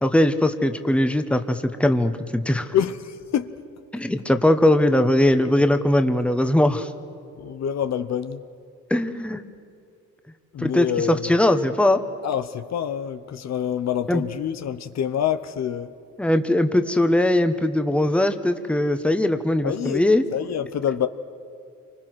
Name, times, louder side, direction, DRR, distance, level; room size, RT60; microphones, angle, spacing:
voice 1, 0.0-2.7 3.9-6.9 8.9-9.4 10.6-12.0 14.1-14.2 16.2-20.2, left 1 dB, 5° left, 1.3 m, -20 dB
voice 2, 2.7-3.5 7.4-8.4 10.5-11.5 12.2-15.9 19.6-20.1 20.3-21.1, left 9 dB, 60° left, 1.0 m, -26 dB
28.0 x 25.0 x 6.3 m
cardioid pair, 90°, 30 cm